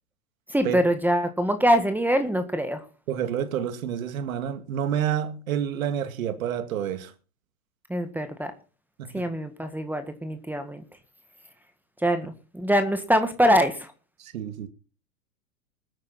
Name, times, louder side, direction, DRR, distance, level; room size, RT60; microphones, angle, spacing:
voice 1, 0.5-2.8 7.9-8.5 9.1-10.8 12.0-13.9, equal, 5° right, 1.7 m, -24 dB
voice 2, 3.1-7.1 9.0-9.3 14.3-14.7, right 9 dB, 70° right, 2.4 m, -28 dB
21.0 x 9.1 x 4.3 m
hypercardioid pair, 105°, 43 cm